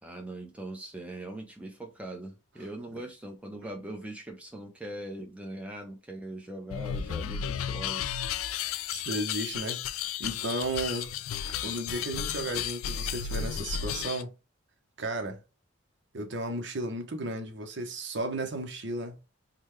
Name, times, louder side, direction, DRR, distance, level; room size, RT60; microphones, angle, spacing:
voice 1, 0.0-8.1, right 1 dB, 5° right, 0.7 m, -41 dB
sound 1, 6.7-14.2, left 9 dB, 85° left, 0.3 m, -33 dB
voice 2, 8.9-9.8 10.2-11.1 11.5-14.3 15.0-15.4 16.1-19.2, right 2 dB, 60° right, 0.8 m, -34 dB
3.8 x 2.2 x 3.1 m
head